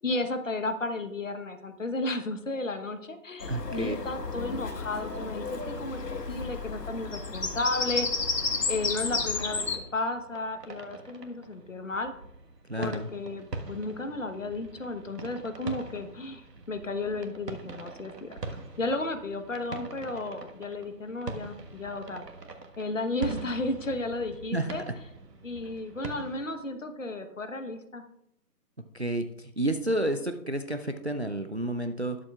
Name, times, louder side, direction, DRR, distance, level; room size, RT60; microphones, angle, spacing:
voice 1, 0.0-8.1 8.7-12.1 12.8-18.3 18.8-22.2 22.8-24.8 25.4-28.0, left 2 dB, 50° left, 8 dB, 1.1 m, -33 dB
Bird vocalization bird call bird song, 3.4-9.8, left 3 dB, 90° left, 1.6 m, -32 dB
voice 2, 3.5-4.0 12.7-13.1 24.5-24.9 28.9-32.2, right 1 dB, 45° right, 8 dB, 0.5 m, -30 dB
sound 1, 9.8-26.5, right 3 dB, 85° right, 1.6 m, -43 dB
20.0 x 7.5 x 2.4 m, 0.79 s
figure-of-eight pair, 175°, 48 cm